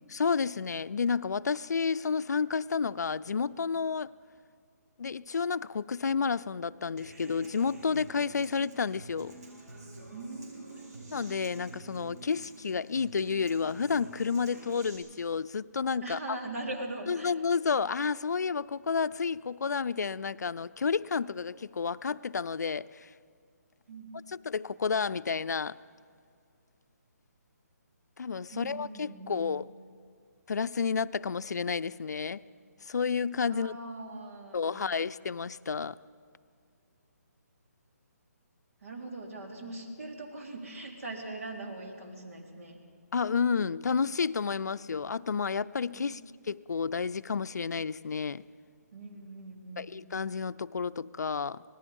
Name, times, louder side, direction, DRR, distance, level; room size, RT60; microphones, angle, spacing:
voice 1, 0.1-4.1 5.0-9.3 11.1-16.2 17.1-23.1 24.3-25.8 28.2-29.7 30.5-32.4 32.8-33.7 34.5-36.0 43.1-48.4 49.8-51.6, left 5 dB, 75° left, 15 dB, 0.5 m, -31 dB
Human voice / Acoustic guitar, 7.0-15.0, right 2 dB, 70° right, 6.2 m, -48 dB
voice 2, 10.1-11.1 16.0-17.3 23.9-24.1 28.5-29.4 33.4-34.9 38.8-42.8 45.9-46.2 48.9-49.9, right 2 dB, 55° right, 1 dB, 3.4 m, -41 dB
26.0 x 18.5 x 5.4 m, 2.2 s
hypercardioid pair, 170°, 9 cm